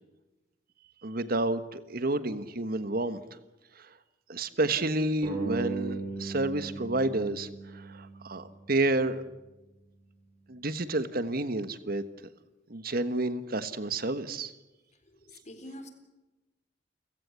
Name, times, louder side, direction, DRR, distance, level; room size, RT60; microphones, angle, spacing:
voice 1, 1.0-3.2 3.8-3.9 4.3-9.2 10.5-12.0 12.7-14.5, right 2 dB, 55° right, 12 dB, 1.4 m, -30 dB
sound 1, 5.2-8.4, right 4 dB, 30° right, 7.2 m, -37 dB
voice 2, 15.1-15.9, left 1 dB, 40° left, 8 dB, 3.9 m, -46 dB
30.0 x 17.0 x 8.2 m, 1.1 s
head